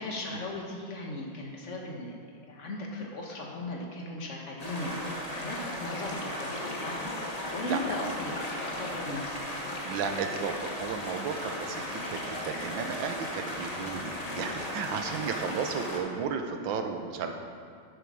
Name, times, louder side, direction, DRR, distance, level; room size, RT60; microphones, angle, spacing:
voice 1, 0.0-2.1 2.5-7.1 7.5-9.4, left 1 dB, 40° left, -1 dB, 1.6 m, -37 dB
sound 1, 4.6-16.0, left 1 dB, 20° left, 1.3 m, -36 dB
voice 2, 7.7-8.1 9.8-17.3, right 6 dB, 75° right, 5 dB, 1.6 m, -34 dB
8.6 x 8.2 x 6.3 m, 2.4 s
omnidirectional pair, 2.2 m